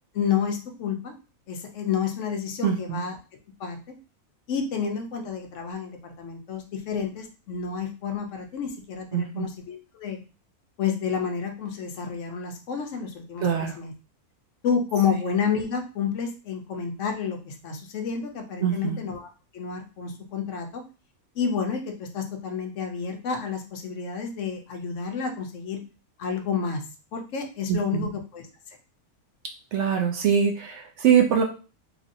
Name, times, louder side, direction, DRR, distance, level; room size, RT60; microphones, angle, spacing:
voice 1, 0.1-1.1 1.5-3.2 3.6-3.8 4.5-10.2 10.8-13.9 14.6-19.3 19.5-20.8 21.4-25.8 26.2-26.8 27.1-28.5, left 6 dB, 65° left, 4 dB, 0.8 m, -30 dB
voice 2, 2.6-3.0 9.1-9.5 13.4-13.8 18.6-19.0 27.7-28.1 29.7-31.4, right 8 dB, 65° right, 2 dB, 0.7 m, -23 dB
3.0 x 2.7 x 2.5 m, 0.33 s
omnidirectional pair, 1.5 m